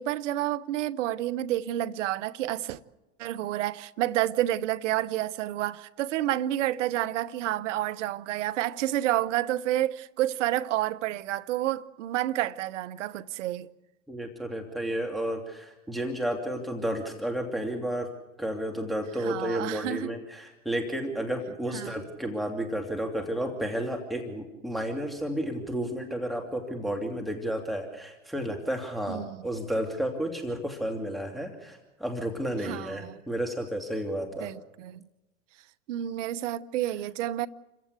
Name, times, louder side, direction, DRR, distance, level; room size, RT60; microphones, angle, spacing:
voice 1, 0.0-2.8 3.2-13.7 19.2-20.1 21.7-22.0 29.1-29.5 32.6-33.2 34.4-35.0 35.9-37.5, right 13 dB, 70° right, 1.0 m, -29 dB
voice 2, 14.1-18.1 18.4-34.5, equal, ahead, 2.6 m, -32 dB
28.5 x 15.5 x 8.3 m
hypercardioid pair, 100°, 38 cm